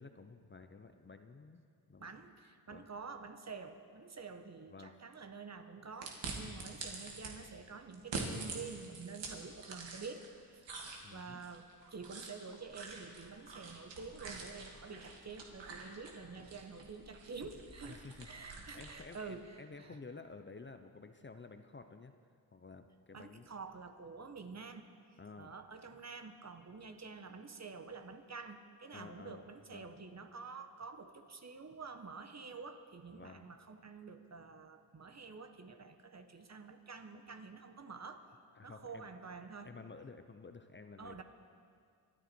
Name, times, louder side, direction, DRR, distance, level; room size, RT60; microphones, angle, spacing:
voice 1, 0.0-1.6 1.9-2.1 2.7-2.8 4.7-5.0 11.0-11.4 17.9-18.3 18.7-22.1 22.5-23.5 25.2-25.5 28.9-30.0 33.1-33.5 38.6-39.1 39.6-41.2, left 4 dB, 25° left, 8 dB, 0.7 m, -52 dB
voice 2, 2.0-10.7 11.1-20.0 23.1-24.9 25.4-38.3 38.6-39.7 41.0-41.2, right 4 dB, 35° right, 8 dB, 1.2 m, -48 dB
sound 1, 6.0-7.3 7.9-10.3 10.6-19.3, right 3 dB, 70° right, 2.3 m, -46 dB
25.5 x 9.9 x 4.5 m, 2.2 s
cardioid pair, 70°, 45 cm